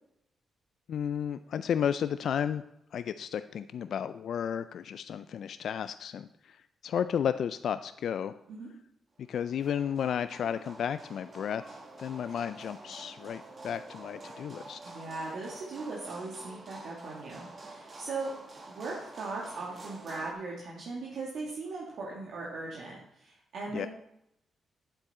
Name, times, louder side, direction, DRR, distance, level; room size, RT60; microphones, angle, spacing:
voice 1, 0.9-2.6 2.9-6.6 6.8-8.3 9.3-14.8 23.7-23.9, left 8 dB, 70° left, 12 dB, 0.3 m, -33 dB
sound 1, 9.2-20.3, right 2 dB, 45° right, 1.7 m, -48 dB
voice 2, 14.8-18.3 18.7-23.9, right 3 dB, 70° right, -4 dB, 1.9 m, -39 dB
9.1 x 7.7 x 4.3 m, 0.79 s
supercardioid pair, 50°, 0 cm